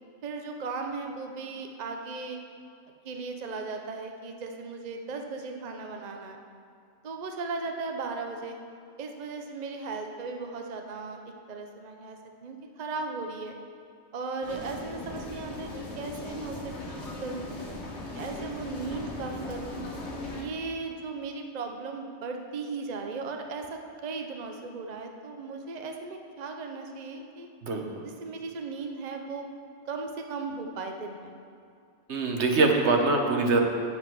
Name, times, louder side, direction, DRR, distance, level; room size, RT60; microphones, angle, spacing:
voice 1, 0.2-2.4 3.0-6.4 7.0-8.6 9.0-11.2 11.5-13.6 14.1-16.7 17.2-17.6 18.1-19.8 20.3-27.5 28.0-29.5 29.9-31.3, right 4 dB, 45° right, 4 dB, 0.7 m, -37 dB
sound 1, 14.4-20.4, left 2 dB, 80° left, 1.8 m, -38 dB
voice 2, 32.1-33.6, right 3 dB, 75° right, 2 dB, 1.3 m, -23 dB
7.9 x 7.6 x 6.2 m, 2.4 s
omnidirectional pair, 1.2 m